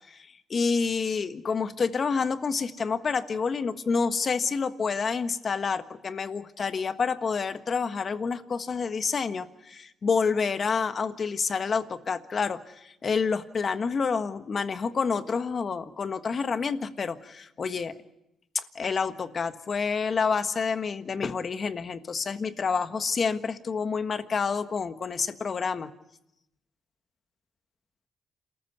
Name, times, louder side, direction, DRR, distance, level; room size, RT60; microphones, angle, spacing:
voice 1, 0.1-17.9 18.5-25.9, left 5 dB, 45° left, 10 dB, 1.5 m, -28 dB
28.0 x 14.0 x 9.5 m, 0.85 s
cardioid pair, 90°, 0 cm